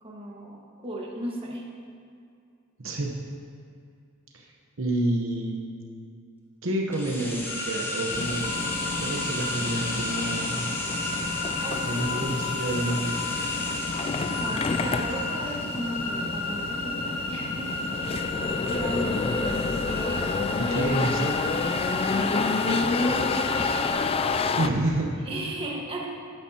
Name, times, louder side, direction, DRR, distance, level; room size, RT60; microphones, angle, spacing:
voice 1, 0.0-1.7 9.5-9.8 11.6-12.4 13.9-14.1 14.4-17.7 18.6-21.6 22.1-23.9 25.3-26.1, right 1 dB, 25° right, -2 dB, 1.5 m, -36 dB
voice 2, 2.8-3.1 4.3-4.5 4.8-5.6 6.6-8.7 9.0-10.6 11.8-13.2 20.6-21.3 24.6-25.2, right 1 dB, 70° right, 0 dB, 1.0 m, -29 dB
sound 1, 6.9-16.8 17.0-17.1, left 1 dB, 10° left, 1.1 m, -36 dB
sound 2, 7.5-23.9, left 2 dB, 45° left, 1.2 m, -33 dB
sound 3, 8.1-24.7, left 4 dB, 30° left, 0.3 m, -29 dB
13.0 x 10.5 x 2.9 m, 2.4 s
head